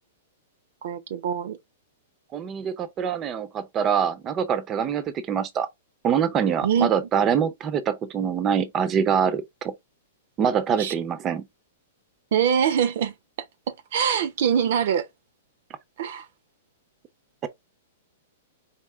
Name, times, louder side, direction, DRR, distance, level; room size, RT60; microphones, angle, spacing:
voice 1, 0.8-1.6 6.6-6.9 10.8-10.9 12.3-13.1 13.7-15.1 16.0-16.3, right 8 dB, 65° right, 0.7 m, -23 dB
voice 2, 2.3-5.7 6.0-9.7 10.4-11.5 17.4-17.5, right 7 dB, 25° right, 0.6 m, -24 dB
4.3 x 2.8 x 3.5 m
hypercardioid pair, 140°, 0 cm